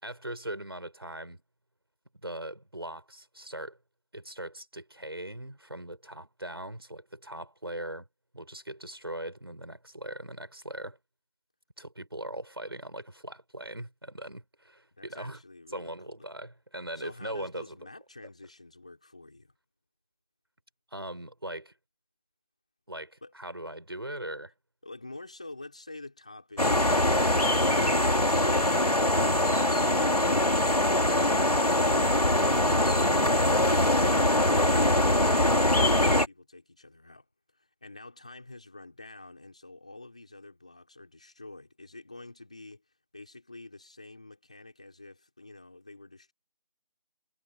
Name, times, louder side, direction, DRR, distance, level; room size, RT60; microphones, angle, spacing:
voice 1, 0.0-1.4 2.2-3.8 4.1-8.1 8.3-11.0 11.8-15.4 15.7-17.8 20.9-21.7 22.9-24.5, right 1 dB, 35° right, 5.6 m, -40 dB
voice 2, 15.0-15.9 16.9-19.5 23.2-23.3 24.8-34.3 34.7-37.3 37.5-42.8 43.1-46.3, left 2 dB, 10° left, 4.4 m, -48 dB
sound 1, 26.6-36.3, left 1 dB, 65° left, 2.7 m, -23 dB
figure-of-eight pair, 180°, 21 cm